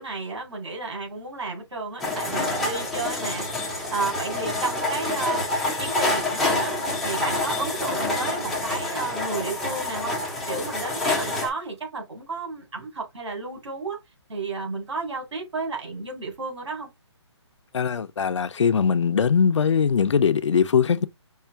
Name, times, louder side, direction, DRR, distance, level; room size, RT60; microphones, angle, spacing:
voice 1, 0.0-5.5 5.8-6.7 7.0-10.2 10.5-14.0 14.3-16.9, right 3 dB, 70° right, 3.5 m, -32 dB
sound 1, 2.0-11.5, left 2 dB, ahead, 0.5 m, -27 dB
voice 2, 17.7-21.1, left 6 dB, 80° left, 0.6 m, -21 dB
5.6 x 2.5 x 3.5 m
hypercardioid pair, 170°, 15 cm